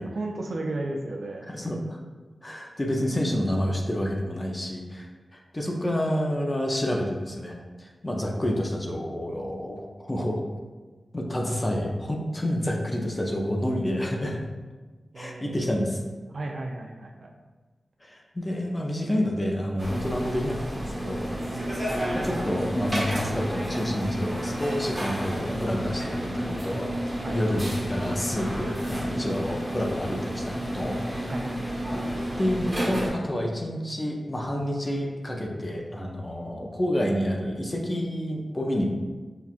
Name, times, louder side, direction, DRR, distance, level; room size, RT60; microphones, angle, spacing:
voice 1, 0.0-1.5 15.1-16.0 16.3-17.3 21.5-21.7 27.2-27.5 31.3-31.7, right 2 dB, 65° right, 1 dB, 0.4 m, -35 dB
voice 2, 1.5-2.0 2.4-10.4 11.1-14.4 15.2-16.0 18.0-21.2 22.2-27.0 27.3-31.0 32.4-38.9, equal, 20° left, 0 dB, 0.5 m, -29 dB
sound 1, 19.8-33.1, equal, 10° right, 0.9 m, -31 dB
5.6 x 2.3 x 2.4 m, 1.3 s
wide cardioid pair, 115°, 0 cm